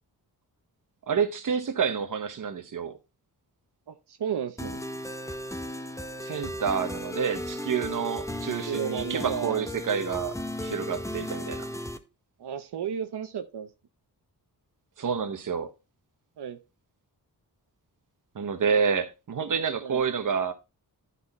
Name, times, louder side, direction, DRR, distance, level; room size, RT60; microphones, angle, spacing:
voice 1, 1.1-3.0 6.2-11.7 15.0-15.7 18.3-20.5, right 6 dB, 55° right, 1.1 m, -28 dB
voice 2, 3.9-4.8 8.6-9.6 12.4-13.7 16.4-16.6 19.8-20.0, right 8 dB, 85° right, 0.8 m, -33 dB
sound 1, 4.6-12.0, left 1 dB, 10° left, 0.8 m, -35 dB
11.5 x 4.2 x 4.2 m
wide cardioid pair, 130°, 38 cm